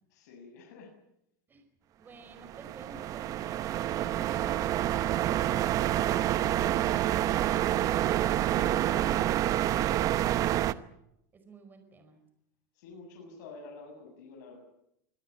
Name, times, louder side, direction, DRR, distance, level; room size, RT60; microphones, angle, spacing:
voice 1, 0.1-0.9 12.7-14.6, left 3 dB, 70° left, 1 dB, 7.1 m, -48 dB
voice 2, 2.0-7.3 11.3-12.2, right 3 dB, 20° right, 7 dB, 4.8 m, -53 dB
sound 1, 2.4-10.7, right 12 dB, 35° right, 0.9 m, -28 dB
25.0 x 18.0 x 8.8 m, 0.77 s
supercardioid pair, 140°, 10 cm